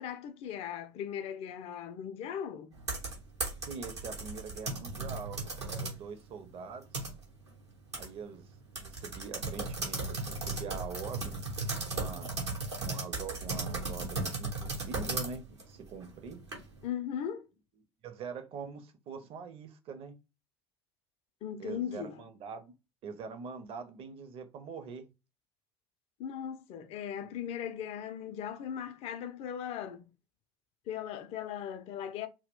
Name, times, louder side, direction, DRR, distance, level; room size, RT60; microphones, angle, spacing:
voice 1, 0.0-2.7 16.8-17.5 21.4-22.3 26.2-30.1 30.9-32.3, left 9 dB, 45° left, 0.4 m, -38 dB
sound 1, 2.7-6.0 6.4-7.5 7.9-8.1 8.3-8.4 8.8-16.8, right 3 dB, 85° right, 0.8 m, -36 dB
voice 2, 3.7-6.9 7.9-8.5 8.8-11.4 11.9-12.3 12.8-16.4 18.0-20.1 21.6-22.7 23.0-25.0 27.2-27.3, right 5 dB, 40° right, 0.5 m, -43 dB
2.3 x 2.1 x 3.5 m
figure-of-eight pair, 60°, 14 cm